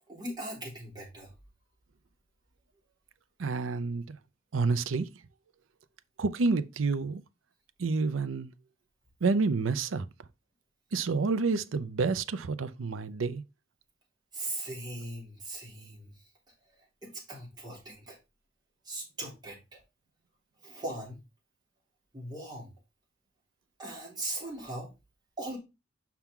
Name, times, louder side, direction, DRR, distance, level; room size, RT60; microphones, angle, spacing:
voice 1, 0.1-1.3 14.3-16.1 16.8-18.2 18.8-19.8 20.6-21.2 22.1-22.7 23.8-24.9 25.4-25.6, right 1 dB, 20° right, 3.4 m, -39 dB
voice 2, 3.4-4.2 4.5-5.1 6.2-7.2 7.8-8.5 9.2-10.1 10.9-13.4, right 4 dB, 85° right, 0.6 m, -29 dB
5.9 x 5.8 x 3.6 m
head